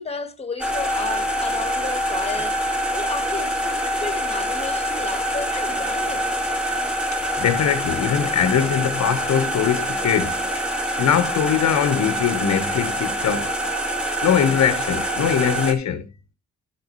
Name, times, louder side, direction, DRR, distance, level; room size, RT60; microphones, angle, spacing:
voice 1, 0.0-6.3, left 4 dB, 20° left, 1.6 m, -33 dB
sound 1, 0.6-15.7, equal, 5° right, 2.3 m, -25 dB
voice 2, 7.1-10.4 11.0-13.5 14.2-16.1, left 8 dB, 65° left, 1.3 m, -21 dB
11.5 x 6.8 x 3.1 m
cardioid pair, 90°, 30 cm